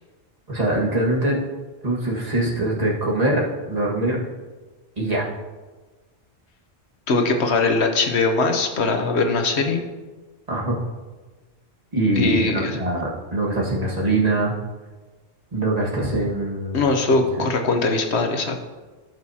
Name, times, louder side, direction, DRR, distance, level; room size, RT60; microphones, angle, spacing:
voice 1, 0.5-1.4 1.8-4.2 5.0-5.3 10.5-10.8 11.9-14.5 15.5-17.5, right 2 dB, 35° right, -3 dB, 1.9 m, -23 dB
voice 2, 7.1-9.8 12.2-12.8 16.7-18.7, left 3 dB, 70° left, 4 dB, 1.2 m, -21 dB
16.5 x 6.3 x 2.8 m, 1.3 s
omnidirectional pair, 1.2 m